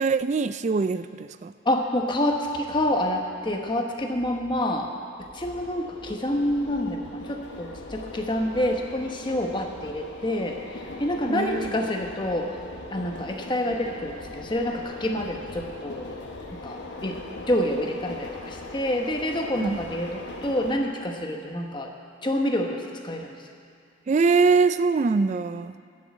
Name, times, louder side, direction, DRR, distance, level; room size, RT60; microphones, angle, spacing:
voice 1, 0.0-1.5 11.3-11.7 19.6-19.8 24.1-25.7, right 4 dB, 35° right, 13 dB, 0.3 m, -23 dB
voice 2, 1.6-4.9 5.3-10.6 11.0-12.5 12.9-16.1 16.5-17.2 17.5-21.9 22.2-23.3, left 1 dB, 25° left, 2 dB, 1.0 m, -27 dB
sound 1, 5.2-20.7, left 2 dB, 70° left, 1.3 m, -40 dB
12.5 x 7.4 x 8.4 m, 2.4 s
head